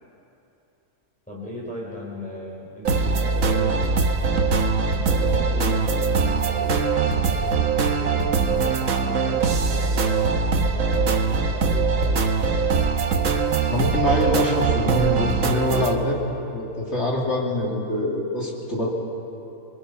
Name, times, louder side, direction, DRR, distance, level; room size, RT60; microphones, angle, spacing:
voice 1, 1.3-4.4 4.9-12.4, equal, 5° left, -5 dB, 3.6 m, -37 dB
sound 1, 2.8-15.9, right 4 dB, 60° right, 1.4 m, -22 dB
voice 2, 13.7-16.2 16.5-18.9, left 1 dB, 50° left, -3 dB, 3.1 m, -24 dB
27.0 x 21.5 x 5.7 m, 2.9 s
omnidirectional pair, 1.5 m